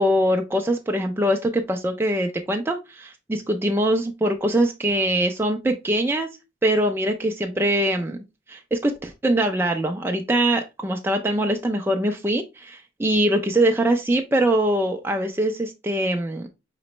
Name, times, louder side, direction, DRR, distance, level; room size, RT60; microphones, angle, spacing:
voice 1, 0.0-6.3 6.6-8.2 8.5-16.5, right 1 dB, 10° right, 0.4 m, -23 dB
5.0 x 3.0 x 3.1 m
head